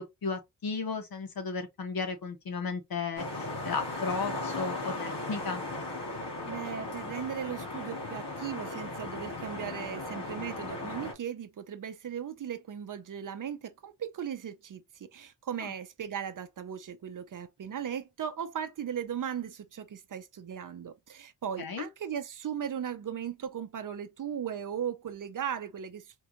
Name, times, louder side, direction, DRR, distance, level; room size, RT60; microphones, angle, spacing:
voice 1, 0.0-5.6 15.6-15.7 21.6-21.9, left 4 dB, 60° left, 1.2 m, -35 dB
sound 1, 3.2-11.1, left 2 dB, 85° left, 2.2 m, -37 dB
voice 2, 6.5-26.1, right 8 dB, 50° right, 0.7 m, -37 dB
4.5 x 2.4 x 2.9 m
cardioid pair, 105°, 41 cm